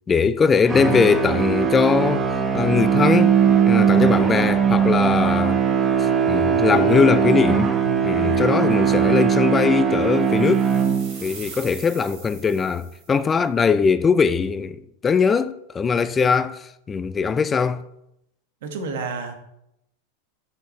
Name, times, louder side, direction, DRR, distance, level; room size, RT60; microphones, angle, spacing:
voice 1, 0.1-2.3 2.5-3.3 3.7-5.6 6.0-7.7 8.0-10.7 11.2-17.8, left 5 dB, 20° left, 0.4 m, -20 dB
sound 1, 0.6-11.4, right 7 dB, 20° right, 1.0 m, -20 dB
sound 2, 10.2-13.2, right 5 dB, 55° right, 3.9 m, -42 dB
voice 2, 18.6-19.3, right 4 dB, 70° right, 1.6 m, -29 dB
11.0 x 7.9 x 3.3 m
hypercardioid pair, 120°, 0 cm